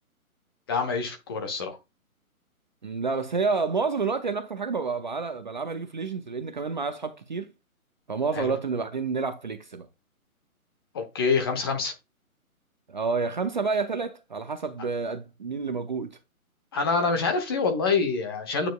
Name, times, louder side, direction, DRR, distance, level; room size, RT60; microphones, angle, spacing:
voice 1, 0.7-1.8 8.4-8.5 10.9-11.9 16.7-18.7, left 4 dB, 15° left, 0.9 m, -26 dB
voice 2, 2.8-7.5 8.1-9.9 12.9-16.2, right 4 dB, 35° right, 0.7 m, -29 dB
9.1 x 6.9 x 2.2 m
figure-of-eight pair, 135°, 43 cm